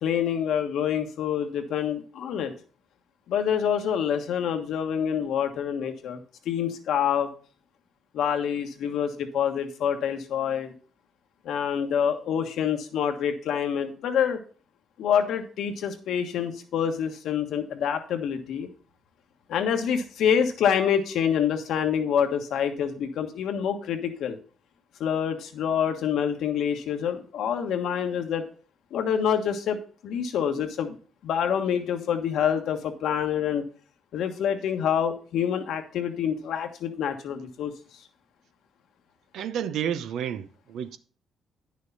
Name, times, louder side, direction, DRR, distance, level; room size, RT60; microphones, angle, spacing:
voice 1, 0.0-2.5 3.3-6.2 6.4-7.3 8.1-10.7 11.4-14.4 15.0-18.7 19.5-24.4 25.0-28.4 28.9-29.8 30.0-31.0 31.2-33.6 34.1-37.7, left 8 dB, 80° left, 1.4 m, -26 dB
voice 2, 39.3-41.0, right 9 dB, 80° right, 0.7 m, -31 dB
9.6 x 6.6 x 4.0 m
cardioid pair, 90°, 0 cm